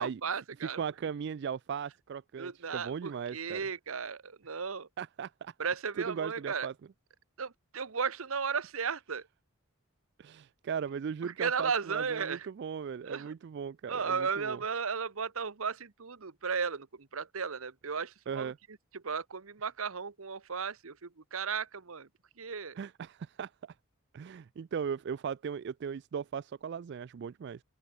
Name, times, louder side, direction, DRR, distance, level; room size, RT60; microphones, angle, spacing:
voice 1, 0.0-0.8 2.4-4.9 5.6-6.7 7.4-9.3 11.2-12.5 13.0-13.3 13.9-18.5 18.9-22.1 22.4-22.8, right 6 dB, 75° right, 1.0 m, -35 dB
voice 2, 0.8-3.6 5.0-5.5 6.1-6.7 10.2-14.6 18.3-18.6 22.8-23.7 24.1-27.6, right 7 dB, 50° right, 0.3 m, -38 dB
open air
head